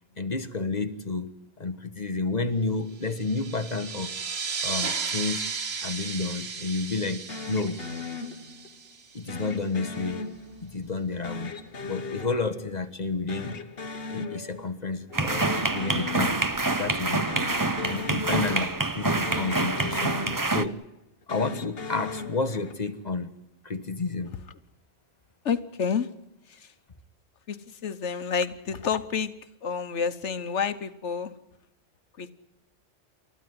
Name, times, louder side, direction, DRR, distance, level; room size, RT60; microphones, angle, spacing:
voice 1, 0.2-1.3 1.6-4.1 4.6-5.5 5.8-7.8 9.1-10.2 10.6-11.5 11.8-13.6 14.1-15.5 15.7-16.4 16.8-17.3 17.8-20.8 21.3-23.3 23.6-24.4, left 3 dB, 40° left, 10 dB, 1.4 m, -30 dB
sound 1, 3.0-9.3, right 5 dB, 65° right, 1.7 m, -34 dB
sound 2, 7.3-8.8 9.3-10.8 11.2-13.0 13.3-14.8 15.1-16.8 17.2-19.0 19.2-20.8 21.2-23.0, left 4 dB, 60° left, 1.6 m, -38 dB
sound 3, 15.1-20.6, right 2 dB, 20° right, 0.8 m, -26 dB
voice 2, 25.4-26.1 26.5-26.7 27.5-29.3 29.6-31.3 32.2-32.3, left 6 dB, 85° left, 11 dB, 1.4 m, -29 dB
29.5 x 14.5 x 9.5 m, 0.84 s
omnidirectional pair, 1.2 m